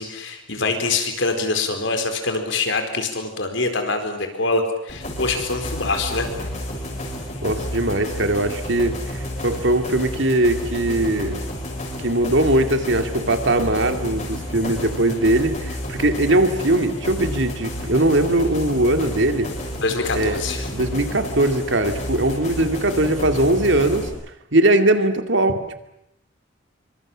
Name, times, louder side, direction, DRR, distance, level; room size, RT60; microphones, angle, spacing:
voice 1, 0.0-6.3 19.8-20.7, left 3 dB, 65° left, 6 dB, 4.4 m, -24 dB
sound 1, 4.9-24.1, left 1 dB, 35° left, 6.6 m, -31 dB
voice 2, 7.4-11.4 12.0-19.5 20.1-20.4 20.7-24.1 24.5-25.7, right 1 dB, 65° right, 7 dB, 2.5 m, -20 dB
26.0 x 25.0 x 7.5 m, 0.82 s
head